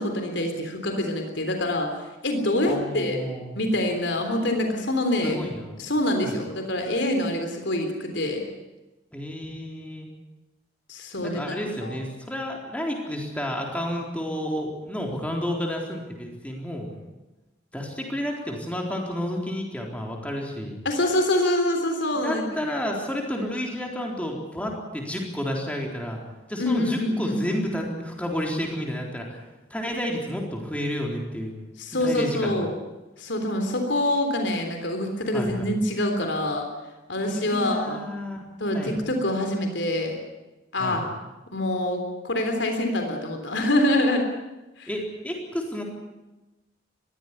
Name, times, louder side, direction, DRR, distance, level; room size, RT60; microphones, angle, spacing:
voice 1, 0.0-5.4 5.8-8.4 10.9-11.4 11.8-12.0 20.9-22.4 26.6-27.4 31.8-32.7 33.2-36.6 37.1-38.0 38.6-40.2 40.7-41.0 41.5-44.3 44.8-44.9, left 1 dB, 70° left, 4 dB, 3.5 m, -25 dB
voice 2, 2.7-3.6 5.2-5.8 6.2-6.4 9.1-10.1 11.2-17.0 17.7-20.8 22.2-26.2 26.5-29.4 29.7-31.5 32.0-32.5 35.3-35.7 37.2-38.4 38.7-38.9 40.8-41.1 44.9-45.8, equal, 5° left, 0 dB, 3.9 m, -31 dB
21.5 x 15.5 x 10.0 m, 1.1 s
head